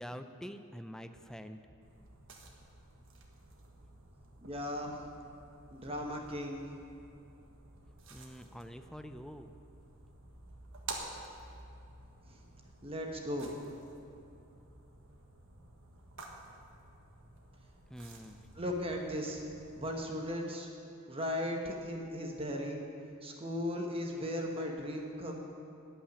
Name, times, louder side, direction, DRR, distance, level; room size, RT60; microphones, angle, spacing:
voice 1, 0.0-1.6 8.1-9.5 17.9-18.5, equal, 5° left, 8 dB, 0.5 m, -46 dB
sound 1, 1.8-19.9, right 3 dB, 60° right, 1.6 m, -51 dB
voice 2, 4.4-5.0 5.7-6.7 12.3-12.4 12.8-13.5 18.6-19.4 19.7-20.7 21.1-22.8 23.2-25.4, left 1 dB, 25° right, 1 dB, 1.2 m, -37 dB
14.5 x 5.9 x 9.6 m, 2.7 s
head